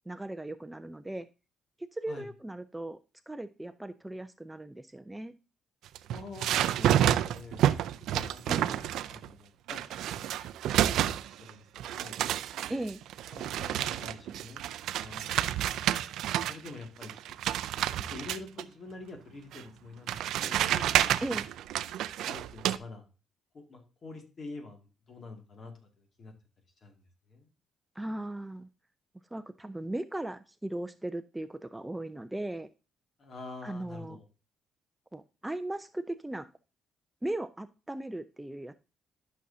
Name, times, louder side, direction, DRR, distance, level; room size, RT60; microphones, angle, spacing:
voice 1, 0.1-1.3 1.9-3.0 3.3-5.3 8.5-8.7 12.7-13.0 21.2-21.5 28.0-28.7 29.3-32.7 33.6-34.2 35.1-36.5 37.2-38.7, right 1 dB, 10° right, 11 dB, 0.5 m, -37 dB
sound 1, 5.9-9.3 9.7-11.5 11.8-16.7 17.0-18.6 19.5-19.6 20.1-22.8, right 11 dB, 85° right, 0.4 m, -29 dB
voice 2, 6.1-7.6 8.1-10.3 10.7-12.2 13.3-14.6 15.0-15.5 16.4-17.4 17.8-21.5 22.2-23.1 23.5-26.3 26.8-27.0 27.3-27.5 33.2-34.3, left 3 dB, 50° left, 4 dB, 2.2 m, -47 dB
12.0 x 6.2 x 2.7 m, 0.31 s
cardioid pair, 90°, 0 cm